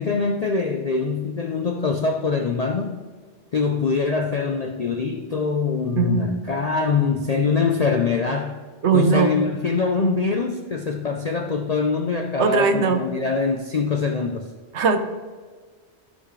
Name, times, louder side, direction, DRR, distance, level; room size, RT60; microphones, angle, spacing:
voice 1, 0.0-2.9 3.5-8.6 8.9-14.5, left 4 dB, 50° left, 3 dB, 0.4 m, -23 dB
voice 2, 6.0-6.3 8.8-9.3 12.4-13.0 14.7-15.0, right 5 dB, 65° right, 7 dB, 1.0 m, -19 dB
13.0 x 5.9 x 3.2 m, 1.5 s
omnidirectional pair, 1.3 m